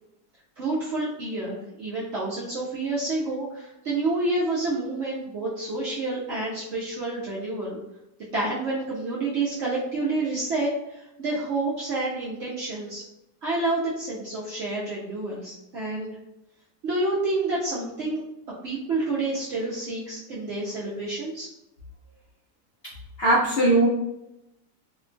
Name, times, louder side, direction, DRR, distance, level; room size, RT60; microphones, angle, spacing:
voice 1, 0.6-7.8 8.3-13.0 13.4-16.1 16.8-18.2 18.6-21.5, right 2 dB, 70° right, -6 dB, 0.6 m, -29 dB
voice 2, 23.2-23.9, right 2 dB, 70° left, -6 dB, 0.5 m, -19 dB
2.8 x 2.2 x 2.5 m, 0.90 s
omnidirectional pair, 1.7 m